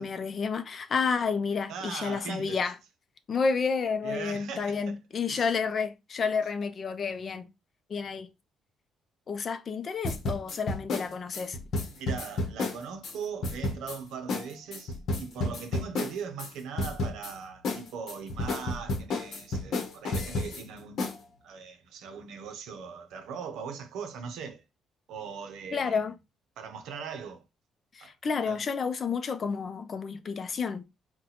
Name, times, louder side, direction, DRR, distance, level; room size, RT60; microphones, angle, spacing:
voice 1, 0.0-2.7 3.3-7.5 7.9-8.3 9.3-11.6 25.7-26.2 27.9-30.8, left 5 dB, 45° left, 0.4 m, -30 dB
voice 2, 1.7-2.6 4.0-5.0 5.3-5.5 11.9-21.2 21.4-24.6 25.1-26.0 26.6-27.4 28.0-28.1 28.4-28.6, right 6 dB, 85° right, 0.6 m, -40 dB
sound 1, 10.0-13.1 13.4-14.0 14.3-14.4 14.7-16.5 16.8-17.3 17.6-20.6 21.0-21.2, left 2 dB, 65° left, 0.8 m, -31 dB
3.9 x 2.2 x 2.8 m
cardioid pair, 100°, 0 cm